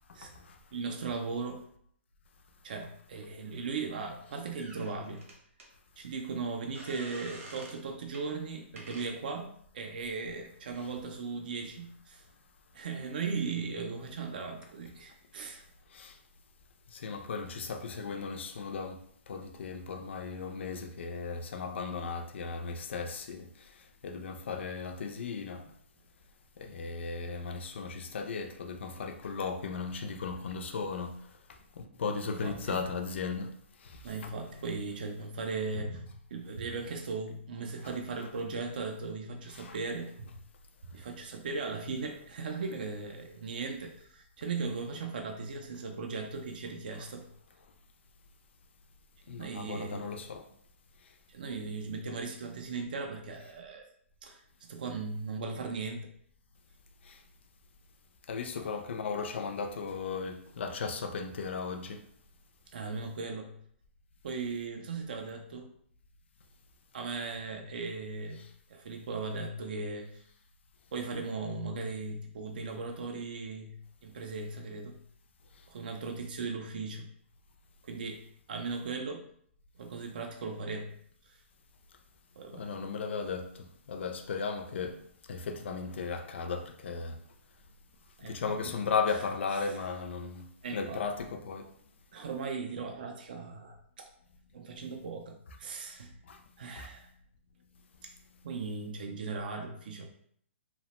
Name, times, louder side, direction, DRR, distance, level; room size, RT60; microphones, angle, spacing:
voice 1, 0.1-0.5 10.8-10.9 15.9-16.2 16.9-19.0 19.3-25.6 26.6-31.2 31.5-33.5 33.8-34.3 37.8-37.9 39.5-39.8 49.3-50.4 57.0-57.2 58.3-62.0 68.4-68.5 82.5-85.0 85.3-87.2 88.2-91.7 96.3-96.4 96.8-96.9, left 5 dB, 60° left, 0.3 m, -36 dB
voice 2, 0.7-1.6 2.6-5.3 6.0-12.2 12.7-15.6 32.4-32.8 34.0-40.4 40.9-47.3 49.3-50.1 51.3-53.9 54.2-54.4 54.7-56.0 62.7-63.5 64.2-65.7 66.9-70.2 70.9-75.0 75.7-77.1 77.8-78.2 78.5-79.3 79.8-80.9 81.3-81.4 82.4-82.7 88.2-88.5 90.6-91.0 92.1-94.1 94.5-96.1 96.6-97.1 98.0-98.1 98.4-100.1, right 4 dB, 45° right, 0.3 m, -38 dB
sound 1, 4.6-5.7 6.7-7.8 8.1-8.3 8.8-9.1, right 2 dB, 90° right, 0.9 m, -48 dB
2.8 x 2.1 x 2.8 m
hypercardioid pair, 180°, 7 cm